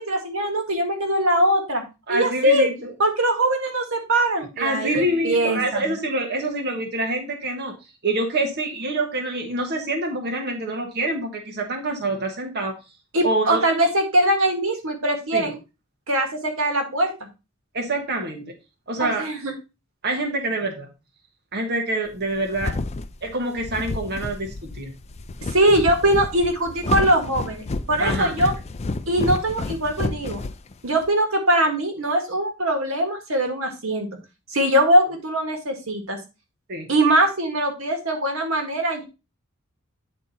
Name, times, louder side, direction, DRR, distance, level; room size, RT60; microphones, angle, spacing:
voice 1, 0.0-1.8 2.1-2.7 3.0-5.6 13.1-15.6 16.1-17.1 19.0-19.5 25.4-28.5 29.1-30.4 30.8-34.1 34.5-36.2 36.9-39.0, right 1 dB, 85° right, 4 dB, 1.9 m, -21 dB
voice 2, 2.1-2.9 4.6-7.7 8.0-12.7 13.2-13.6 15.3-15.5 17.7-18.5 18.9-19.3 20.0-20.9 21.5-22.7 23.2-24.9 28.0-28.3 36.7-36.9, right 2 dB, 55° right, 1 dB, 1.3 m, -26 dB
sound 1, 22.2-31.1, left 3 dB, 30° left, 0.5 m, -30 dB
9.5 x 4.1 x 4.1 m, 0.27 s
head